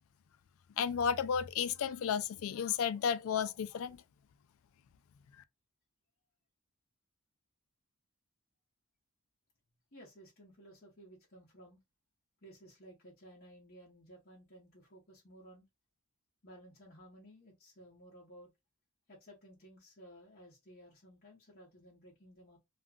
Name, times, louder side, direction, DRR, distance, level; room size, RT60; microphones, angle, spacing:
voice 1, 0.8-4.0, left 7 dB, 65° left, 0.3 m, -33 dB
voice 2, 9.9-11.8 12.4-15.7 16.4-18.5 19.1-22.6, equal, 45° left, 0.8 m, -56 dB
2.4 x 2.1 x 3.6 m
head